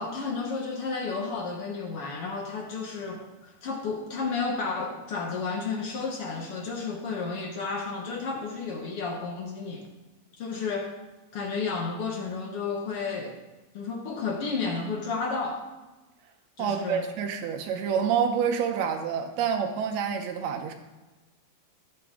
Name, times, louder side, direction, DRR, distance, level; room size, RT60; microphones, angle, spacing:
voice 1, 0.0-9.9 10.4-10.9 11.3-13.4 13.7-15.7 16.6-17.0, left 4 dB, 65° left, 1 dB, 1.5 m, -32 dB
voice 2, 16.6-20.7, right 7 dB, 75° right, 4 dB, 1.7 m, -27 dB
15.0 x 6.9 x 3.7 m, 1.2 s
omnidirectional pair, 3.8 m